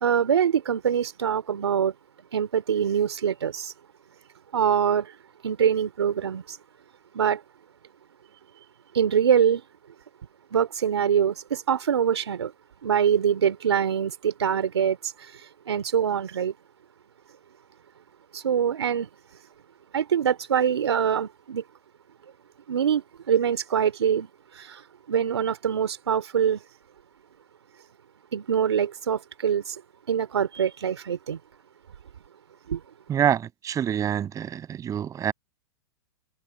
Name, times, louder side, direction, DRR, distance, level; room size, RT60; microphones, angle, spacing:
voice 1, 0.0-1.9 2.3-3.7 4.5-5.1 5.4-6.6 7.1-7.4 8.9-9.6 10.5-12.5 12.8-15.3 15.7-16.5 18.3-19.1 19.9-21.6 22.7-24.3 24.5-24.8 25.1-26.6 28.3-29.8 30.1-31.4 32.7-32.8, right 8 dB, 80° right, 2.8 m, -24 dB
voice 2, 33.1-35.3, right 9 dB, 25° right, 6.0 m, -26 dB
hypercardioid pair, 115°, 14 cm